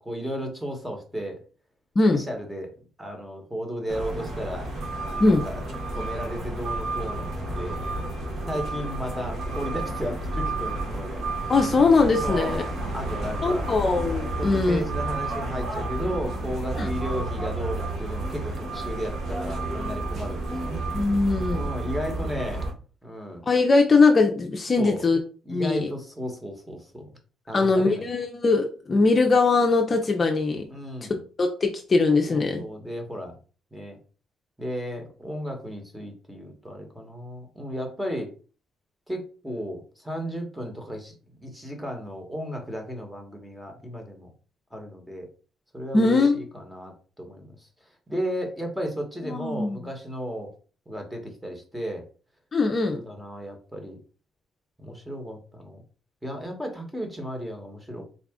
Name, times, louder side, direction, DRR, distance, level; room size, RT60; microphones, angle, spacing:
voice 1, 0.0-1.4 2.1-2.7 3.0-4.7 5.3-5.6 5.9-7.3 7.5-7.8 8.5-11.2 12.2-13.7 14.4-20.8 21.5-22.7 23.0-23.4 24.8-25.0 25.4-27.1 27.5-28.1 30.7-31.2 32.3-33.4 33.7-34.0 34.6-38.3 39.1-44.3 44.7-45.3 45.7-47.7 48.1-50.5 50.9-52.1 52.9-54.0 54.8-55.8 56.2-58.1, equal, 5° right, 3 dB, 1.3 m, -34 dB
sound 1, 3.9-22.7, right 2 dB, 60° right, 1.4 m, -31 dB
voice 2, 11.5-12.6 13.4-14.8 16.8-16.9 20.9-21.6 23.5-25.2 25.5-25.9 27.5-30.6 31.4-32.6 45.9-46.4 49.3-49.9 52.5-53.0, left 3 dB, 35° left, 3 dB, 0.6 m, -21 dB
4.0 x 2.4 x 3.6 m, 0.37 s
cardioid pair, 90°, 0 cm